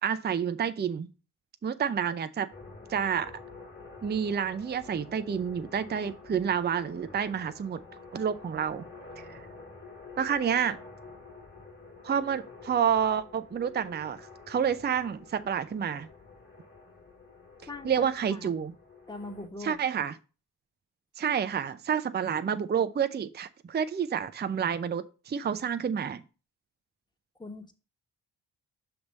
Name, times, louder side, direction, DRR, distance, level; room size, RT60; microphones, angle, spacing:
voice 1, 0.0-1.1 1.6-2.5 2.9-3.3 4.0-7.8 8.1-8.9 9.2-9.4 10.2-10.8 12.0-16.1 17.8-18.7 19.6-20.1 21.2-26.2, right 7 dB, 25° right, 0.5 m, -29 dB
sound 1, 2.5-19.5, left 3 dB, 25° left, 1.6 m, -49 dB
voice 2, 19.1-19.8 27.4-27.7, left 2 dB, 10° left, 1.2 m, -41 dB
5.8 x 3.5 x 5.3 m
cardioid pair, 60°, 42 cm